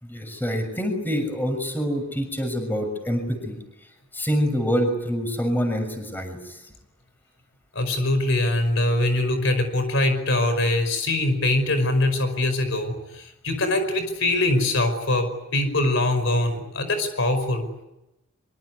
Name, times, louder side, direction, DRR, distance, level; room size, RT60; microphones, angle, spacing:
voice 1, 0.0-3.6 4.1-6.6, equal, 10° left, 6 dB, 6.5 m, -26 dB
voice 2, 7.7-17.7, left 1 dB, 65° left, 9 dB, 5.3 m, -23 dB
24.5 x 24.5 x 9.6 m, 0.92 s
head